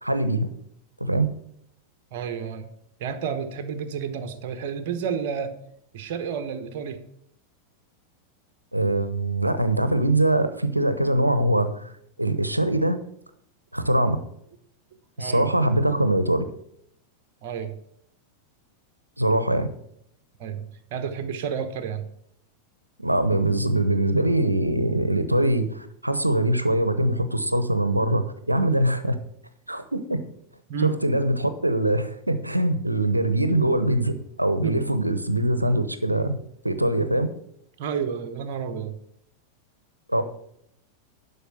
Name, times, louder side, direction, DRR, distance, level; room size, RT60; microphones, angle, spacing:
voice 1, 0.0-0.5 1.0-1.3 8.7-11.9 12.2-13.0 13.7-14.2 15.2-16.4 19.2-19.7 23.0-29.2 29.7-30.2 30.8-34.1 34.4-36.4 36.6-37.3 40.1-40.2, right 1 dB, 85° right, 11 dB, 0.9 m, -22 dB
voice 2, 2.1-2.7 3.0-5.5 5.9-7.0 15.2-15.5 17.4-17.7 20.4-20.6 20.9-22.1 30.7-31.0 34.6-34.8 37.8-39.0, right 7 dB, 50° right, 8 dB, 1.1 m, -30 dB
11.5 x 5.7 x 5.8 m, 0.72 s
figure-of-eight pair, 90°, 0 cm